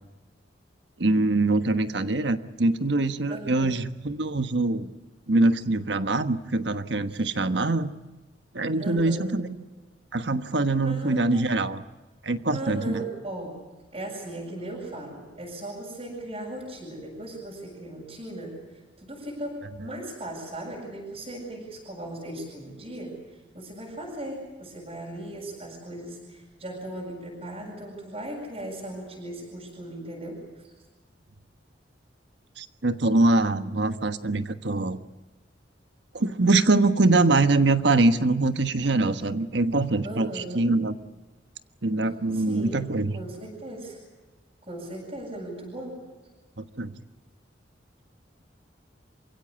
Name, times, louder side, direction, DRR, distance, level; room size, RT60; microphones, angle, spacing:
voice 1, 1.0-4.9 5.3-7.9 8.5-9.5 10.1-11.8 12.2-13.0 32.6-35.0 36.1-40.9 41.8-43.1 46.6-46.9, right 2 dB, 70° right, 10 dB, 1.3 m, -23 dB
voice 2, 3.3-3.7 7.1-7.2 8.8-9.3 10.8-11.5 12.5-13.6 13.9-18.6 19.0-23.1 23.5-30.6 40.0-40.7 42.3-42.8 43.1-44.0 44.6-46.0, right 1 dB, 35° right, -3 dB, 7.7 m, -37 dB
28.0 x 16.5 x 9.7 m, 1.2 s
head